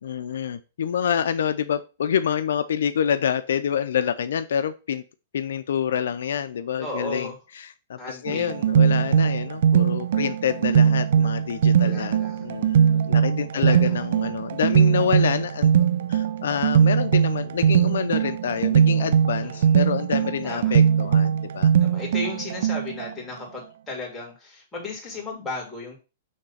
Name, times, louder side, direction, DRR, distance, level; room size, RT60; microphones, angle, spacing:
voice 1, 0.0-5.0 5.3-15.7 16.1-21.7, left 8 dB, 80° left, 12 dB, 0.5 m, -27 dB
voice 2, 6.8-7.3 8.0-8.5 11.8-12.4 13.5-14.0 19.4-19.7 20.4-20.7 21.8-26.0, left 2 dB, 10° left, -3 dB, 2.5 m, -35 dB
sound 1, 8.3-23.1, right 8 dB, 70° right, 0.5 m, -20 dB
6.5 x 3.3 x 5.6 m, 0.31 s
hypercardioid pair, 155°, 0 cm